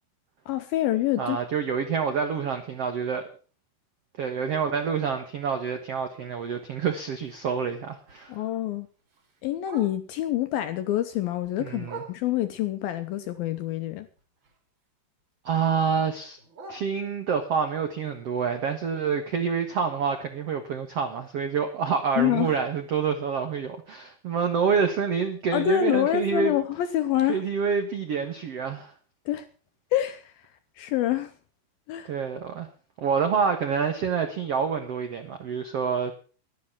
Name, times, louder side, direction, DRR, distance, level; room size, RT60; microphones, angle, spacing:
voice 1, 0.5-1.4 8.3-8.9 9.4-14.1 22.2-22.5 25.5-27.4 29.3-29.5 29.9-30.3 30.8-31.3 31.9-32.1, left 12 dB, 75° left, 2.2 m, -26 dB
voice 2, 1.2-3.3 4.2-8.4 11.6-12.0 15.4-16.4 16.7-26.5 27.3-28.9 32.1-32.7 33.0-36.1, right 6 dB, 75° right, 1.4 m, -27 dB
Bark, 7.1-10.3 10.7-12.6 13.1-14.9 15.2-17.5 17.9-21.9 22.2-22.3 22.6-23.0 23.4-23.5 23.9-24.0 24.5-24.6, right 4 dB, 30° right, 2.8 m, -49 dB
12.5 x 12.0 x 6.0 m
omnidirectional pair, 5.0 m